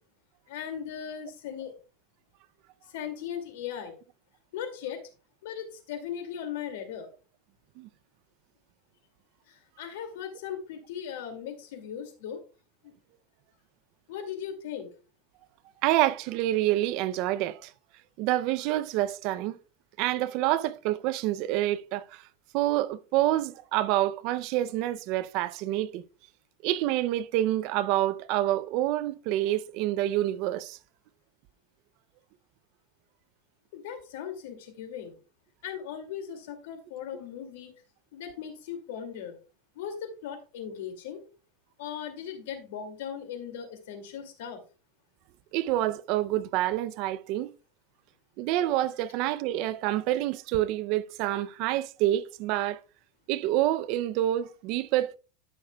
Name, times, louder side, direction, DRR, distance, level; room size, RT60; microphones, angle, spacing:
voice 1, 0.5-1.7 2.9-4.0 4.5-5.0 5.4-7.1 9.5-12.4 12.8-12.9 14.1-14.9 33.7-35.1 35.6-37.7 38.1-39.4 39.8-41.2 41.8-44.6, left 8 dB, 80° left, 2.3 m, -38 dB
voice 2, 15.8-17.7 18.2-19.6 20.0-22.2 22.5-26.0 26.6-30.8 45.5-47.5 48.4-52.8 53.3-55.2, right 14 dB, 50° right, 0.5 m, -27 dB
12.5 x 6.5 x 2.3 m
supercardioid pair, 150°, 0 cm